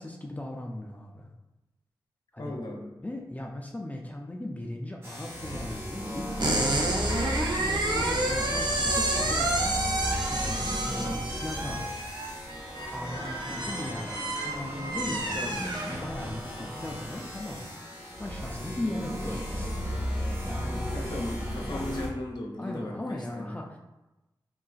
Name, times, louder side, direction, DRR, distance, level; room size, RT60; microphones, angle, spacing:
voice 1, 0.0-1.3 2.3-2.6 3.0-11.9 12.9-20.9 21.7-21.9 22.6-23.8, left 1 dB, 20° left, 0 dB, 0.3 m, -38 dB
voice 2, 2.4-2.9 15.3-15.7 20.9-23.6, left 1 dB, 60° left, -1 dB, 0.6 m, -36 dB
sound 1, 5.0-22.1, equal, 30° right, 0.8 m, -35 dB
sound 2, 6.4-16.4, right 2 dB, 60° right, 0.5 m, -30 dB
3.7 x 2.4 x 2.3 m, 1.0 s
wide cardioid pair, 65°, 8 cm